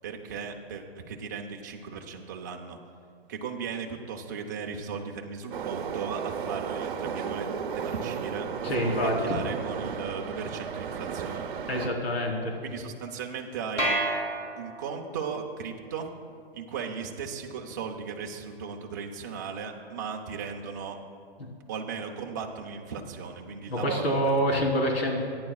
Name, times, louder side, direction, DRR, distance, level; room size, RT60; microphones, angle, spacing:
voice 1, 0.0-2.8 3.3-7.5 7.7-8.5 8.8-11.5 12.6-14.0 14.6-16.1 16.5-21.0 21.7-24.2 24.5-24.6, right 6 dB, 20° right, 1 dB, 0.6 m, -36 dB
Subway metro underground, 5.5-11.9, right 7 dB, 50° right, 0.9 m, -34 dB
voice 2, 8.6-9.4 11.7-12.6 23.7-25.2, equal, 70° left, -1 dB, 3.8 m, -26 dB
sound 1, 13.8-15.1, right 1 dB, 10° left, 1.2 m, -29 dB
27.0 x 10.5 x 2.4 m, 2.2 s
hypercardioid pair, 175°, 32 cm